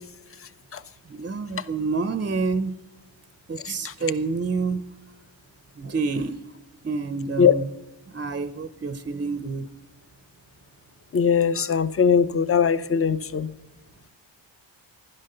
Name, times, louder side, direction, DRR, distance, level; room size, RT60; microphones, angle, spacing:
voice 1, 1.1-2.8 3.5-4.8 5.8-6.4 6.8-7.7 8.1-9.7, right 4 dB, 25° right, 0.6 m, -28 dB
voice 2, 11.1-13.5, left 6 dB, 30° left, 0.6 m, -20 dB
15.0 x 11.5 x 6.6 m
wide cardioid pair, 145°, 46 cm